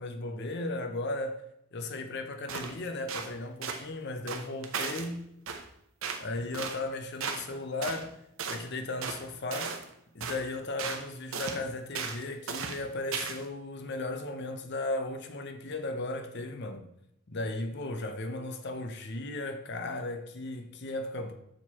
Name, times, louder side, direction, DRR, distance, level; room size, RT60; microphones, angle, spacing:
voice 1, 0.0-1.4 1.7-5.2 6.2-8.1 8.5-9.7 10.1-16.8 17.3-21.3, left 2 dB, 50° left, 0.7 m, -36 dB
sound 1, 2.5-2.8 3.1-3.3 3.6-3.8 4.3-5.1 5.5-5.6 6.0-6.2 6.5-6.8 7.2-7.5 7.8-8.0 8.4-8.6 9.0-9.2 9.5-9.9 10.2-10.4 10.8-11.1 11.3-11.6 11.9-12.2 12.5-12.8 13.1-13.4, right 5 dB, 65° right, 0.7 m, -35 dB
6.5 x 4.5 x 4.2 m
head